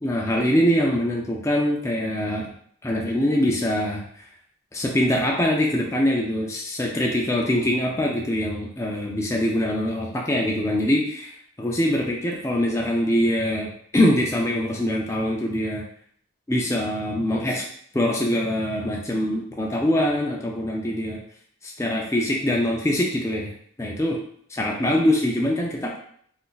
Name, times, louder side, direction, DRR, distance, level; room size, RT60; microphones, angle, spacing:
voice 1, 0.0-2.5 2.8-4.1 4.7-15.9 16.5-17.6 17.9-21.2 21.6-23.5 23.8-24.2 24.5-26.0, left 1 dB, 15° left, -1 dB, 0.3 m, -23 dB
3.8 x 2.5 x 2.3 m, 0.62 s
head